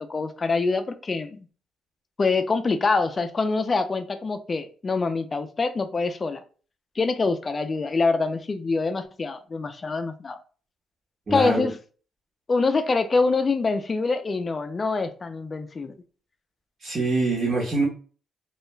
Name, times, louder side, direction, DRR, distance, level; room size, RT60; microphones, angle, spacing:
voice 1, 0.0-1.5 2.2-6.4 7.0-10.4 11.3-11.8 12.5-15.9, left 3 dB, 35° left, 9 dB, 0.3 m, -25 dB
voice 2, 11.3-11.7 16.8-17.8, right 2 dB, 40° right, -7 dB, 1.0 m, -24 dB
2.3 x 2.1 x 3.1 m, 0.39 s
cardioid pair, 90°, 0 cm